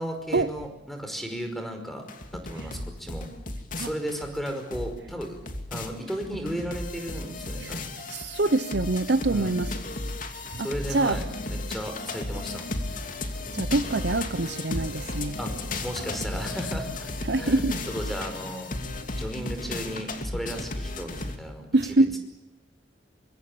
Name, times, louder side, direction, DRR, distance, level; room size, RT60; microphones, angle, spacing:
voice 1, 0.0-2.0 2.3-3.3 3.8-5.4 5.7-7.9 9.3-9.6 10.5-12.6 15.4-15.5 15.8-17.1 17.4-18.7 19.2-21.7, equal, ahead, 5.3 m, -35 dB
sound 1, 2.1-21.4, left 2 dB, 50° left, 2.8 m, -34 dB
voice 2, 8.1-9.7 10.5-10.7 10.9-11.2 13.5-15.4 17.3-17.8 21.7-22.2, right 2 dB, 70° right, 0.9 m, -25 dB
24.5 x 23.5 x 8.7 m
head